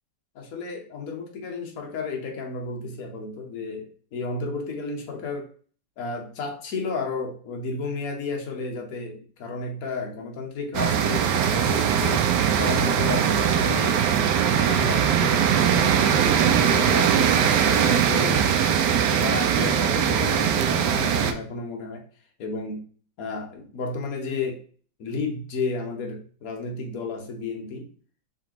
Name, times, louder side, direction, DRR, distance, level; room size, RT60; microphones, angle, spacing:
voice 1, 0.3-5.5 6.0-14.1 14.5-18.6 19.1-22.0 22.4-22.8 23.2-24.6 25.0-27.9, left 3 dB, 55° left, 1 dB, 1.3 m, -32 dB
sound 1, 10.7-21.3, right 8 dB, 75° right, 1.1 m, -21 dB
5.0 x 3.3 x 2.9 m, 0.43 s
omnidirectional pair, 2.0 m